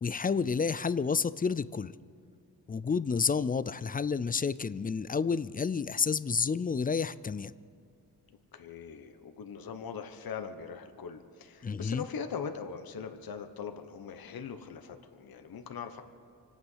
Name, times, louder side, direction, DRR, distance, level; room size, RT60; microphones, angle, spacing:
voice 1, 0.0-1.9 2.7-7.5 11.6-12.0, left 5 dB, 25° left, 17 dB, 0.4 m, -30 dB
voice 2, 8.5-16.0, left 6 dB, 65° left, 7 dB, 1.2 m, -41 dB
25.0 x 9.0 x 5.7 m, 2.3 s
cardioid pair, 75°, 39 cm